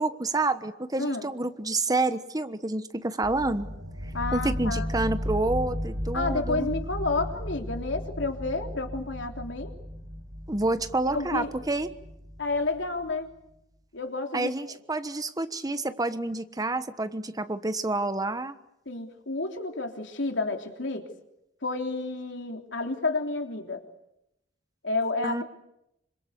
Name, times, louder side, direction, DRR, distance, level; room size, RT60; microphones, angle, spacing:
voice 1, 0.0-3.7 4.0-6.7 10.5-11.9 14.3-18.5 25.2-25.4, right 2 dB, 20° right, 11 dB, 1.2 m, -28 dB
voice 2, 1.0-1.3 4.1-4.9 6.1-9.7 11.1-11.5 12.4-13.3 13.9-14.5 18.9-21.1 21.6-23.8 24.8-25.4, left 3 dB, 85° left, 4 dB, 3.4 m, -30 dB
sound 1, 3.2-13.0, equal, 70° right, 6.7 m, -35 dB
27.0 x 26.0 x 8.3 m, 0.85 s
head